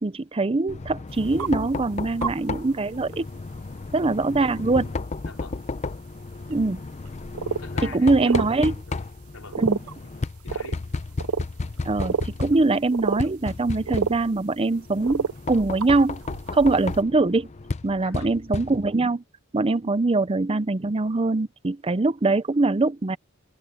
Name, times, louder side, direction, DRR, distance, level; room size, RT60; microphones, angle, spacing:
voice 1, 0.0-3.3 3.9-4.9 6.5-6.8 7.9-8.7 9.6-9.8 11.8-16.2 16.5-17.5 17.8-19.2 19.5-23.2, right 3 dB, 25° right, 0.5 m, -23 dB
Knock, 0.7-19.1, left 3 dB, 30° left, 0.5 m, -33 dB
sound 1, 1.4-1.5 2.2-2.4 2.7-2.8 3.1-3.2 5.3-5.4 6.5-6.6 7.1-7.2 7.3-7.8 8.2-8.5 9.5-9.9 10.5-10.8 11.2-12.3 12.5-12.6 12.9-13.3 13.6-13.7 13.9-14.2 15.0-17.0, right 6 dB, 85° right, 0.6 m, -29 dB
voice 2, 5.2-5.6 7.6-8.5 8.8-9.0 9.3-9.6 10.4-10.8 18.0-18.4, left 4 dB, 80° left, 4.7 m, -43 dB
head